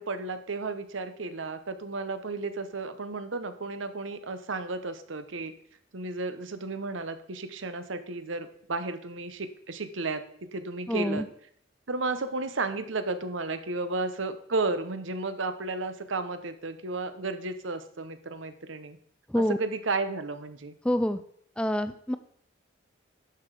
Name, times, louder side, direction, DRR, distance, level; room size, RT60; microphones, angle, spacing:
voice 1, 0.0-5.5 5.9-11.3 11.9-19.0 19.4-20.7, right 3 dB, 85° right, 10 dB, 0.9 m, -33 dB
voice 2, 10.9-11.2 19.3-19.6 20.8-21.2 21.6-22.2, left 1 dB, 5° left, 11 dB, 0.3 m, -26 dB
11.5 x 5.9 x 4.8 m, 0.63 s
head